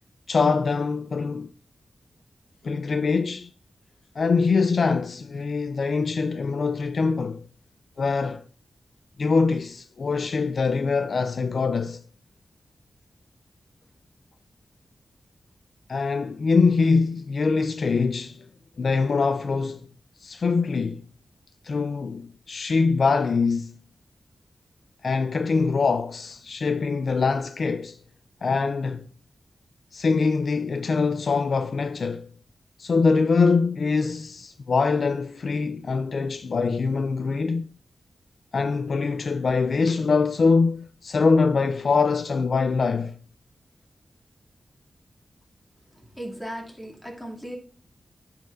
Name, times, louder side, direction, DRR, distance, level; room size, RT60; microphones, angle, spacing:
voice 1, 0.3-1.5 2.6-3.5 4.2-7.4 8.0-8.4 9.2-12.0 15.9-18.5 18.8-19.9 20.2-21.0 21.6-23.8 25.0-28.0 28.4-29.1 29.9-32.3 32.8-37.7 38.5-43.2, left 4 dB, 65° left, 0.4 m, -23 dB
voice 2, 46.1-47.5, equal, 10° left, 2.5 m, -36 dB
12.5 x 5.7 x 2.5 m
wide cardioid pair, 80°, 0 cm